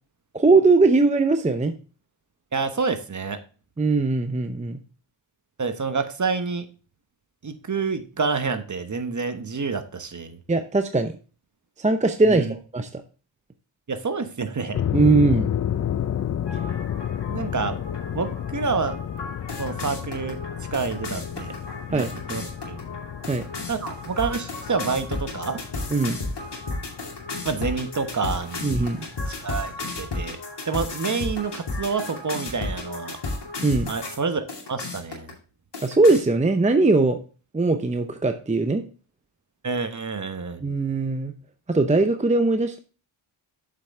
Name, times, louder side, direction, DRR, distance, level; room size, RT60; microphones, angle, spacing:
voice 1, 0.3-1.7 3.8-4.8 10.5-11.1 11.8-13.0 14.9-15.5 16.5-16.6 21.9-22.1 23.3-23.4 25.9-26.2 28.6-29.1 33.6-33.9 35.8-37.2 37.5-38.8 40.6-41.3 41.7-42.8, right 3 dB, 15° right, 7 dB, 0.7 m, -20 dB
voice 2, 2.5-3.4 5.6-6.7 7.4-10.4 12.3-12.5 13.9-14.8 17.3-17.8 18.1-18.9 19.6-20.4 20.7-21.5 21.9-22.4 22.7-22.8 23.7-25.6 27.4-28.8 29.4-30.4 30.6-33.2 33.9-35.3 39.6-40.6, right 4 dB, 35° right, 9 dB, 1.1 m, -28 dB
sound 1, 14.7-29.9, left 10 dB, 35° left, 0.4 m, -32 dB
sound 2, 16.5-34.2 34.5-35.3 35.7-36.2, left 2 dB, 55° left, 2.6 m, -34 dB
7.4 x 5.7 x 3.6 m, 0.36 s
cardioid pair, 55°, 49 cm